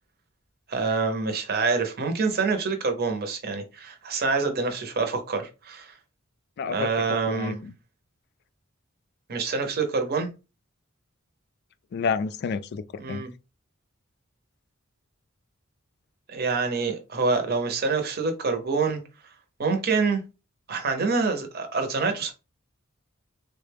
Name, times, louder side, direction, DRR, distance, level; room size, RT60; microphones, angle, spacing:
voice 1, 0.7-6.0 6.7-7.6 9.3-10.3 13.0-13.3 16.3-19.0 19.6-20.2 20.7-22.3, right 4 dB, 50° right, 0.7 m, -26 dB
voice 2, 6.6-6.9 7.3-7.7 11.9-13.2, left 5 dB, 55° left, 0.3 m, -29 dB
3.6 x 2.2 x 3.3 m
head